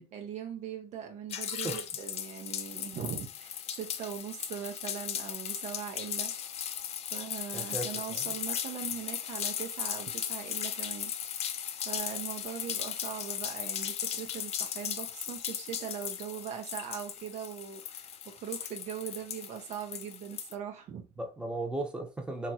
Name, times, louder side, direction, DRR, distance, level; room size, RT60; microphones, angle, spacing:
voice 1, 0.1-6.3 7.1-11.1 11.8-21.1, right 8 dB, 55° right, 0.6 m, -40 dB
sound 1, 1.3-20.5, left 9 dB, 50° left, 0.4 m, -37 dB
voice 2, 7.5-8.4 21.2-22.5, right 2 dB, 5° right, 0.8 m, -36 dB
2.9 x 2.4 x 2.8 m
supercardioid pair, 90°, 14 cm